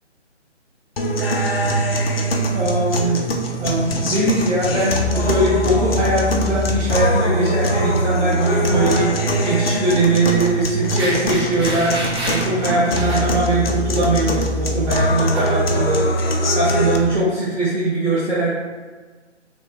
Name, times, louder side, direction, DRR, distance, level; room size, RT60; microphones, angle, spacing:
sound 1, 1.0-17.0, equal, 55° left, 0.6 m, -22 dB
voice 1, 2.5-3.2 3.6-18.5, right 2 dB, 80° right, -11 dB, 1.5 m, -21 dB
sound 2, 4.6-13.1, equal, 20° left, 0.9 m, -40 dB
sound 3, 8.4-9.0 9.3-9.5 10.9-13.2 15.3-15.5, right 1 dB, 20° right, 0.7 m, -28 dB
3.3 x 2.9 x 3.4 m, 1.4 s
figure-of-eight pair, 155°, 36 cm